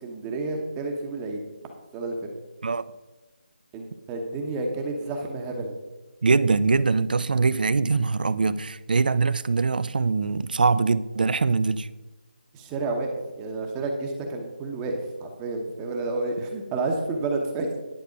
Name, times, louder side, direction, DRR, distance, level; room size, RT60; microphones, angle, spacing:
voice 1, 0.0-1.5 1.9-2.2 3.7-5.7 12.5-13.1 13.4-17.8, right 3 dB, 15° right, 0.9 m, -30 dB
voice 2, 6.2-11.9, right 4 dB, 60° right, 0.5 m, -23 dB
11.0 x 6.7 x 5.1 m
figure-of-eight pair, 165°, 5 cm